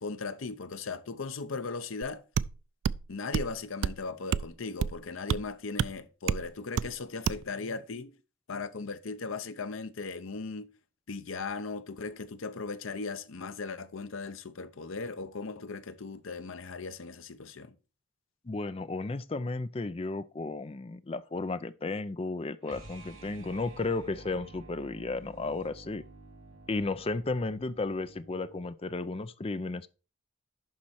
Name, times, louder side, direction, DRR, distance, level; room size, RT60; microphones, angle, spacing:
voice 1, 0.0-2.2 3.1-8.1 8.5-10.7 11.1-17.7, left 4 dB, 80° left, 0.7 m, -38 dB
sound 1, 2.0-2.1 2.4-2.5 2.8-3.0 3.3-3.5 3.8-4.0 4.3-4.5 4.8-5.0 5.3-5.4 5.8-5.9 6.3-6.4 6.8-6.9 7.3-7.4, right 7 dB, 65° right, 0.3 m, -29 dB
voice 2, 18.5-26.0 26.7-29.9, left 3 dB, 30° left, 0.5 m, -34 dB
sound 2, 22.6-28.7, right 2 dB, 85° right, 3.4 m, -51 dB
11.5 x 4.3 x 4.3 m
head